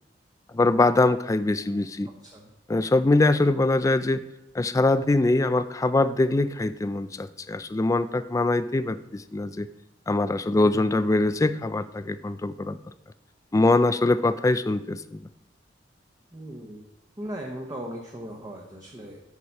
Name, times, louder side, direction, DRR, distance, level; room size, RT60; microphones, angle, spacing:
voice 1, 0.5-2.1 2.7-4.2 4.5-9.7 10.1-12.8 13.5-15.3, left 2 dB, 15° left, 13 dB, 0.3 m, -23 dB
voice 2, 2.1-2.5 10.5-11.0 16.3-16.8 17.2-19.2, equal, 20° right, -1 dB, 0.9 m, -38 dB
8.3 x 4.9 x 5.8 m, 0.94 s
head